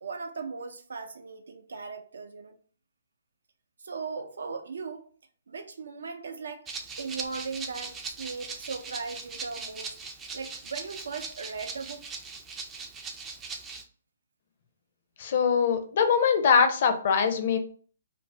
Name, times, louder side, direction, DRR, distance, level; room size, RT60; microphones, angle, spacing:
voice 1, 0.0-2.5 3.8-5.1 5.5-6.7 7.0-10.0 10.3-12.1, right 4 dB, 80° right, 0.5 m, -38 dB
Rattle (instrument), 6.7-13.8, right 4 dB, 15° right, 0.3 m, -40 dB
voice 2, 15.2-17.6, left 6 dB, 50° left, 0.5 m, -22 dB
2.5 x 2.0 x 3.3 m
hypercardioid pair, 150°, 0 cm